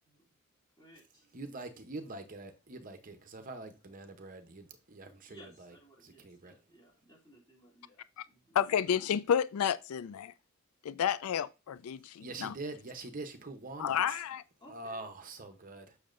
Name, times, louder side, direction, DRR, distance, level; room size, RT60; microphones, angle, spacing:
voice 1, 0.1-0.4 0.8-1.3 5.3-8.6 14.6-15.1, right 1 dB, 20° left, 2.9 m, -59 dB
voice 2, 1.3-6.5 12.2-14.2 14.7-16.0, right 2 dB, 40° right, 0.8 m, -44 dB
voice 3, 8.5-10.3 10.8-12.5 13.8-14.4, left 8 dB, 80° left, 0.4 m, -31 dB
7.0 x 6.4 x 2.5 m
head